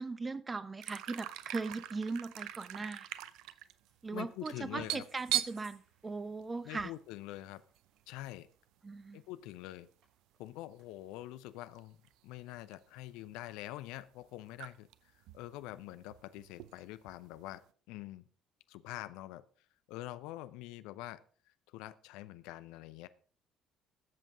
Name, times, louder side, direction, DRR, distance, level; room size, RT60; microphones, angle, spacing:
voice 1, 0.0-3.1 4.0-6.9 8.8-9.2, right 3 dB, 25° right, 16 dB, 1.0 m, -39 dB
sound 1, 0.8-7.0 7.3-7.4 7.8-8.1 9.0-9.1 10.5-10.7 11.7-11.8 12.0-12.9 13.3-13.4 14.2-14.3 14.5-14.9 15.2-17.4, right 13 dB, 60° right, 0.6 m, -40 dB
sound 2, 3.5-4.5 4.8-9.5 9.8-11.0, right 4 dB, 45° right, 6.8 m, -67 dB
voice 2, 4.1-5.0 6.6-7.6 8.1-8.5 9.1-9.9 10.4-12.0 12.2-14.9 15.3-18.2 18.7-19.4 19.9-21.2 21.7-23.1, left 15 dB, 65° left, 13 dB, 0.6 m, -45 dB
20.5 x 7.6 x 3.7 m, 0.43 s
figure-of-eight pair, 50°, 0 cm